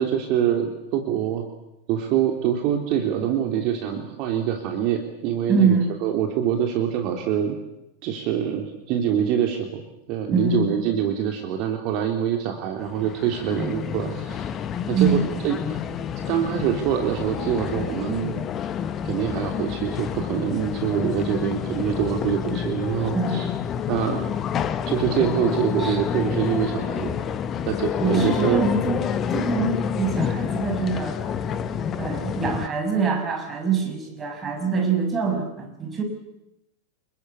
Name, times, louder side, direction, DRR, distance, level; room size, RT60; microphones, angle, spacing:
voice 1, 0.0-1.5 1.9-5.7 6.0-7.6 8.0-9.8 10.1-14.5 14.9-15.8 16.2-18.4 19.0-23.5 23.9-24.2 24.9-27.2 27.7-28.6, right 9 dB, 40° right, 4 dB, 3.1 m, -25 dB
voice 2, 5.5-5.9 10.3-10.7 14.9-15.5 23.1-23.4 25.8-26.0 28.0-29.0 29.3-31.2 32.0-36.0, right 5 dB, 20° right, 4 dB, 6.5 m, -24 dB
sound 1, 12.8-32.7, left 8 dB, 30° left, 1.4 m, -28 dB
27.0 x 22.5 x 8.3 m, 0.91 s
figure-of-eight pair, 90°, 0 cm